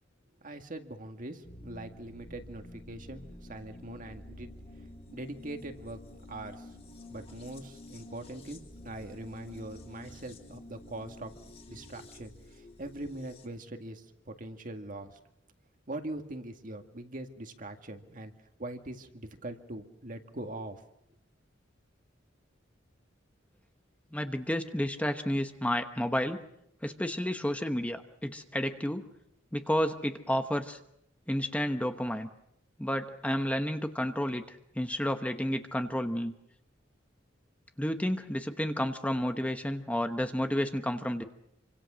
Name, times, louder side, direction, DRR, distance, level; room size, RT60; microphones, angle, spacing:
voice 1, 0.4-4.5 5.1-6.0 6.3-6.7 7.1-15.2 15.9-18.3 18.6-20.8, right 1 dB, 45° right, 6 dB, 2.0 m, -42 dB
sound 1, 1.4-13.5, left 1 dB, 30° left, 3.1 m, -49 dB
voice 2, 24.1-26.4 26.8-29.0 29.5-30.8 31.3-32.3 32.8-36.3 37.8-41.2, equal, 5° left, 7 dB, 1.1 m, -31 dB
27.0 x 25.5 x 6.4 m, 0.77 s
head